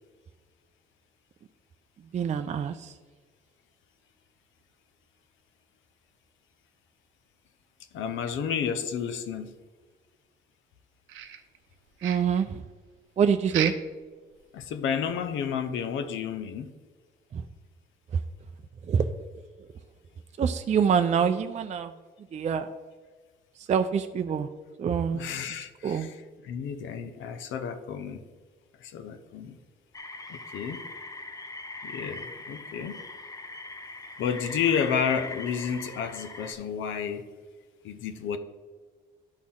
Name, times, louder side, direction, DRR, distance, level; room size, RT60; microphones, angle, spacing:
voice 1, 2.1-3.0 12.0-12.7 13.2-13.7 17.3-17.4 18.1-18.2 18.8-19.1 19.6-19.7 20.4-22.0 22.3-22.7 23.6-24.5 24.8-25.3 25.8-26.1, right 7 dB, 35° right, 8 dB, 0.4 m, -26 dB
voice 2, 7.9-9.6 14.5-16.7 25.1-26.1 26.5-28.2 28.8-29.6 30.3-30.8 31.8-33.0 34.2-37.2 37.8-38.4, left 7 dB, 80° left, 9 dB, 0.7 m, -31 dB
sound 1, 11.1-11.7 12.0-12.4 13.5-14.0 14.3-14.4 14.9-15.0 15.5-15.6, right 9 dB, 85° right, 0.7 m, -34 dB
sound 2, 29.9-36.5, left 2 dB, 15° left, 0.7 m, -41 dB
11.5 x 4.3 x 3.6 m, 1.4 s
cardioid pair, 90°, 20 cm